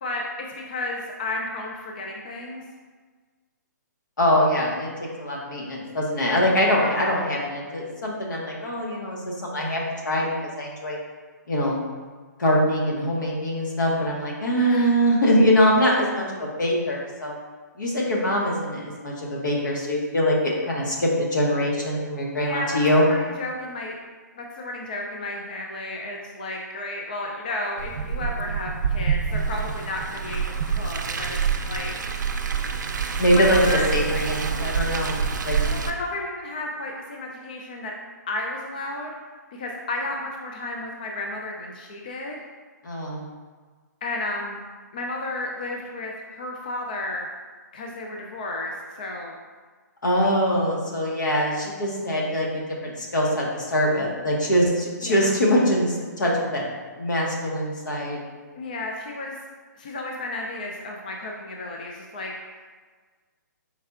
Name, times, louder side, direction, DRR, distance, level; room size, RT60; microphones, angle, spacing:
voice 1, 0.0-2.6 6.8-7.1 14.5-15.0 22.3-23.9 24.3-32.0 33.3-33.9 35.2-35.3 35.6-37.9 38.3-39.1 39.5-42.4 44.0-44.6 44.9-47.3 47.7-49.4 55.0-55.2 58.5-59.4 59.7-62.7, left 2 dB, 25° left, 0 dB, 0.3 m, -33 dB
voice 2, 4.2-4.9 5.2-11.0 11.5-11.8 12.4-17.3 17.8-23.0 33.2-33.6 33.9-35.6 42.8-43.3 50.0-56.6 57.0-58.2, equal, 85° left, -2 dB, 1.3 m, -23 dB
Car, 27.8-35.9, right 6 dB, 75° right, 0.5 m, -26 dB
4.6 x 4.2 x 2.4 m, 1.4 s
hypercardioid pair, 175°, 10 cm